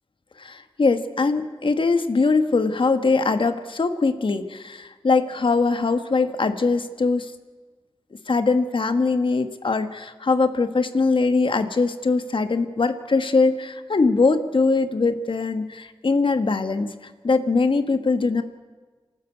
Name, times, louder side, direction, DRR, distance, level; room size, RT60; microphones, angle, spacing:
voice 1, 0.4-7.3 8.3-16.9 17.2-18.4, left 3 dB, 60° left, 9 dB, 1.5 m, -21 dB
28.0 x 13.0 x 8.4 m, 1.4 s
wide cardioid pair, 70°, 10 cm